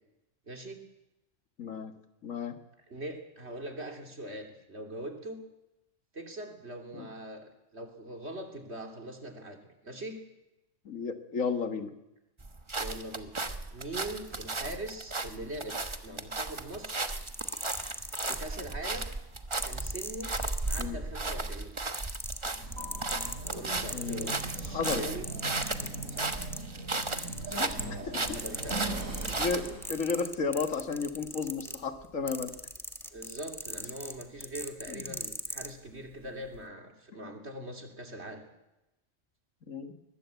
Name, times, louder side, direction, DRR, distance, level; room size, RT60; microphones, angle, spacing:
voice 1, 0.5-0.8 2.9-5.4 6.1-10.2 12.8-13.4 13.7-17.1 18.3-19.1 19.6-20.3 20.7-21.7 23.4-25.3 26.1-26.4 27.5-28.8 33.1-38.4, right 1 dB, 55° right, 4 dB, 3.3 m, -42 dB
voice 2, 1.6-1.9 2.2-2.6 6.9-7.1 10.9-11.9 20.8-21.0 23.9-24.4 24.7-25.1 27.5-27.7 28.1-28.2 29.2-32.5 34.9-35.0 39.7-39.9, left 5 dB, 85° left, 7 dB, 2.2 m, -33 dB
sound 1, 12.4-29.8, right 3 dB, 25° right, 1.2 m, -35 dB
sound 2, 17.1-18.8 19.5-21.3 21.6-26.6 27.0-28.0 28.3-35.7 36.4-36.6, equal, ahead, 1.5 m, -39 dB
sound 3, 22.6-30.1, right 2 dB, 90° right, 4.2 m, -40 dB
22.0 x 20.0 x 8.2 m, 0.93 s
omnidirectional pair, 1.3 m